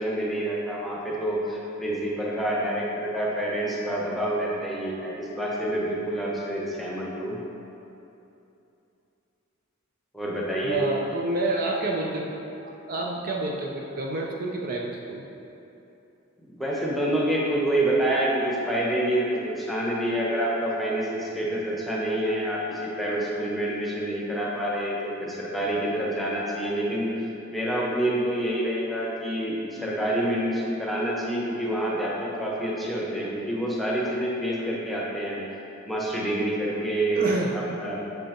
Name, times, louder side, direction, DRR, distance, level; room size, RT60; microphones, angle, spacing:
voice 1, 0.0-7.4 10.1-10.9 16.4-35.4 35.9-37.3 37.5-38.0, right 1 dB, ahead, -5 dB, 0.8 m, -27 dB
voice 2, 10.6-12.2 12.9-15.2 37.1-37.5, right 2 dB, 45° right, -1 dB, 0.5 m, -28 dB
7.2 x 5.4 x 2.9 m, 2.9 s
head